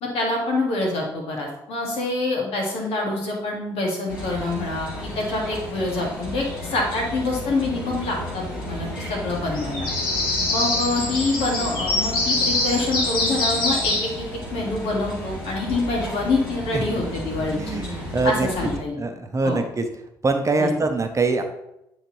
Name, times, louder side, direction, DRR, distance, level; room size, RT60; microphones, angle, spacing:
voice 1, 0.0-9.9 10.5-14.1 14.5-17.6 18.2-19.0 19.4-19.6 20.6-20.8, left 2 dB, 60° left, -1 dB, 2.1 m, -26 dB
sound 1, 4.1-18.8, left 2 dB, 90° left, 1.4 m, -28 dB
voice 2, 17.5-18.5 18.9-19.8 20.2-21.4, right 3 dB, 30° right, 6 dB, 0.9 m, -23 dB
8.8 x 4.1 x 3.2 m, 0.85 s
hypercardioid pair, 50°, 11 cm